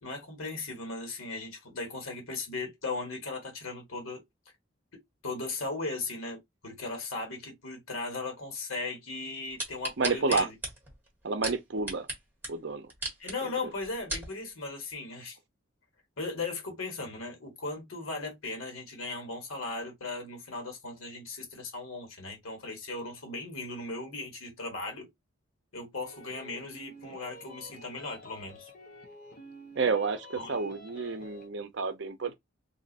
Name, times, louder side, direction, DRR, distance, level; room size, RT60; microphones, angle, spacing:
voice 1, 0.0-4.2 5.2-10.5 13.2-15.4 16.2-25.1 25.7-28.7 30.4-30.6, left 3 dB, 85° left, 1.4 m, -37 dB
sound 1, 9.6-12.2 12.4-12.5 12.9-13.3 13.8-14.3 14.9-15.0, right 2 dB, 10° right, 1.4 m, -35 dB
voice 2, 10.0-10.5 11.2-12.1 12.5-12.9 13.4-13.5 29.8-32.4, right 4 dB, 55° right, 0.6 m, -30 dB
sound 2, 26.0-31.5, equal, 45° left, 0.8 m, -50 dB
2.7 x 2.5 x 3.9 m
head